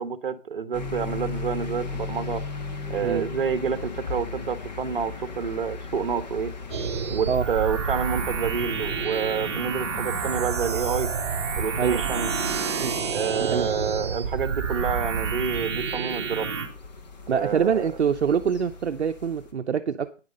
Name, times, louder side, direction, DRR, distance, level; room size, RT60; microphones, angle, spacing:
voice 1, 0.0-2.4 2.9-6.5 7.1-11.1 11.6-12.3 13.1-16.5 17.3-17.9, right 6 dB, 45° right, 13 dB, 1.1 m, -28 dB
sound 1, 0.7-19.5, left 4 dB, 35° left, 1.6 m, -38 dB
sound 2, 6.7-16.7, right 6 dB, 20° right, 1.6 m, -29 dB
voice 2, 13.4-13.7 17.3-20.2, right 7 dB, 60° right, 8 dB, 0.7 m, -25 dB
9.8 x 8.0 x 5.2 m, 0.34 s
hypercardioid pair, 170°, 38 cm